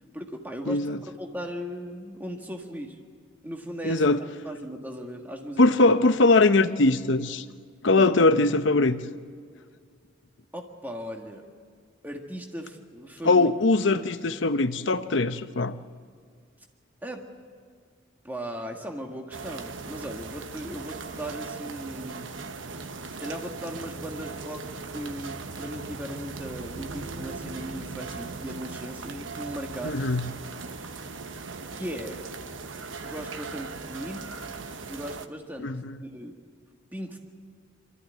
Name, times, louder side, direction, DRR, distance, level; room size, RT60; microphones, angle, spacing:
voice 1, 0.1-0.8 1.2-3.0 3.4-4.0 4.5-5.8 6.3-6.4 7.9-8.1 10.5-11.4 12.0-13.5 17.0-17.3 18.2-22.3 23.2-30.1 30.8-31.1 31.7-32.2 33.0-34.3 34.9-35.8 36.1-36.4 36.9-37.2, equal, 10° right, 2 dB, 1.6 m, -37 dB
voice 2, 0.7-1.0 3.8-4.2 5.6-7.4 7.8-9.0 13.2-15.8 29.8-30.3 35.6-36.0, left 2 dB, 70° left, 10 dB, 0.8 m, -21 dB
sound 1, 19.3-35.3, right 4 dB, 85° right, 1.1 m, -38 dB
24.5 x 14.0 x 9.4 m, 2.1 s
head